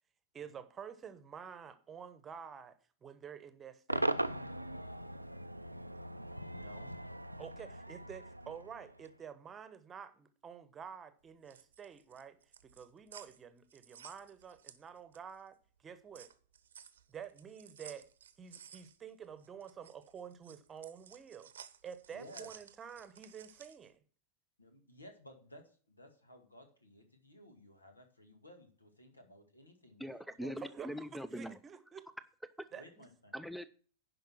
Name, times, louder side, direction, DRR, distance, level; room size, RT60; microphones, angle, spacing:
voice 1, 0.3-4.1 7.4-12.4 12.6-15.6 15.8-16.3 17.1-18.1 18.4-21.5 21.8-24.0 30.6-32.1 32.7-33.0, right 7 dB, 20° right, 1.0 m, -49 dB
Cheering / Crowd / Fireworks, 3.9-9.2, right 1 dB, 85° right, 0.5 m, -39 dB
voice 2, 6.1-6.9 22.1-22.5 24.6-30.0 30.4-30.6 32.7-33.4, left 1 dB, 80° left, 2.1 m, -56 dB
sound 1, 11.3-15.4 15.8-23.9, right 8 dB, 65° right, 0.8 m, -56 dB
voice 3, 30.0-31.6 33.3-33.7, equal, ahead, 0.5 m, -42 dB
10.5 x 5.4 x 5.9 m
figure-of-eight pair, 90°, 0 cm